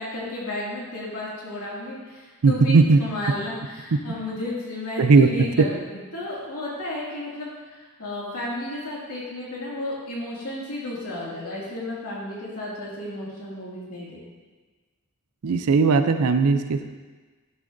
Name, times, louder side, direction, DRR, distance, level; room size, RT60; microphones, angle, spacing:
voice 1, 0.0-14.2, left 1 dB, 85° left, -6 dB, 2.4 m, -33 dB
voice 2, 2.4-3.0 3.9-4.0 5.0-5.3 15.4-16.8, right 4 dB, 85° right, 9 dB, 0.5 m, -17 dB
10.5 x 6.4 x 2.7 m, 1.3 s
head